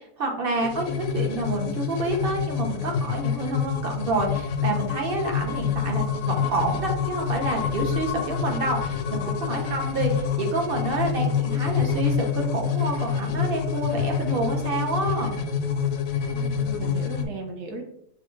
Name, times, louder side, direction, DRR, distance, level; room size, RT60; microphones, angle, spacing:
voice 1, 0.0-15.4, right 2 dB, 60° right, 1 dB, 0.6 m, -28 dB
sound 1, 0.6-17.3, left 6 dB, 90° left, 1.2 m, -27 dB
voice 2, 16.3-17.8, right 3 dB, 80° right, 2 dB, 1.5 m, -37 dB
6.1 x 2.3 x 3.1 m, 0.73 s
omnidirectional pair, 1.8 m